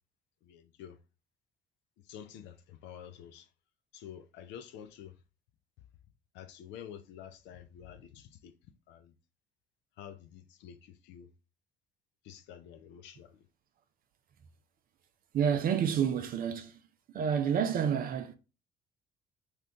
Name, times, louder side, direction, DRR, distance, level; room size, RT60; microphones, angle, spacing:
voice 1, 0.4-1.0 2.0-3.5 3.9-5.2 6.3-8.5 8.9-9.1 10.0-11.3 12.2-13.4, left 9 dB, 60° left, 0.5 m, -49 dB
voice 2, 15.3-16.8 17.1-18.4, right 8 dB, 45° right, 0.5 m, -29 dB
2.9 x 2.4 x 3.6 m
hypercardioid pair, 55°, 21 cm